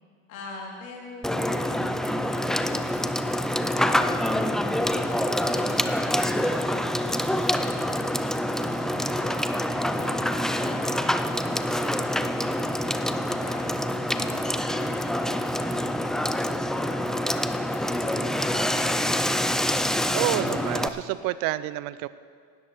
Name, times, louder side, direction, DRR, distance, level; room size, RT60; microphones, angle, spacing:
voice 1, 0.3-3.1 3.9-4.2 4.8-12.8 13.3-17.3 17.7-19.4, left 3 dB, 85° left, -2 dB, 2.9 m, -43 dB
Water / Water tap faucet / Sink (filling or washing), 1.2-20.9, left 1 dB, ahead, 0.3 m, -26 dB
voice 2, 20.1-22.1, right 16 dB, 55° right, 16 dB, 0.6 m, -28 dB
19.0 x 13.0 x 3.1 m, 2.1 s
hypercardioid pair, 80°, 41 cm